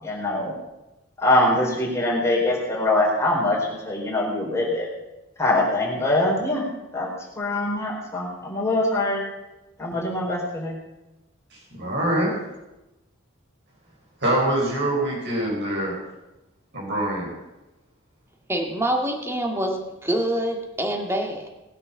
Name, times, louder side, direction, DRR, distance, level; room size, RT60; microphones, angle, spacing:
voice 1, 0.0-0.5 1.2-3.6 3.8-4.9 5.4-6.6 6.9-7.1 7.4-9.2 9.8-10.8, left 1 dB, 15° left, -4 dB, 4.4 m, -23 dB
voice 2, 11.5-12.3 14.2-16.0 16.7-17.3, right 1 dB, 55° right, -2 dB, 4.8 m, -24 dB
voice 3, 18.5-21.5, right 1 dB, 10° right, 2 dB, 1.9 m, -26 dB
19.5 x 8.5 x 7.1 m, 0.99 s
head